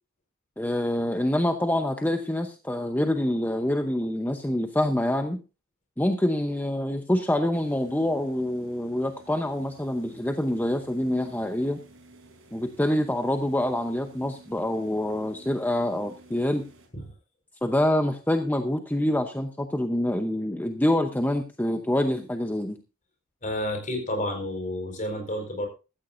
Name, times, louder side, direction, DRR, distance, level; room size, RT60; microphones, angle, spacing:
voice 1, 0.6-5.4 6.0-11.8 12.5-16.6 17.6-22.8, left 1 dB, 10° left, 6 dB, 0.8 m, -26 dB
sound 1, 7.5-16.9, right 2 dB, 65° right, 5.1 m, -53 dB
voice 2, 23.4-25.7, left 1 dB, 35° left, 4 dB, 4.5 m, -30 dB
15.5 x 13.5 x 2.6 m, 0.31 s
head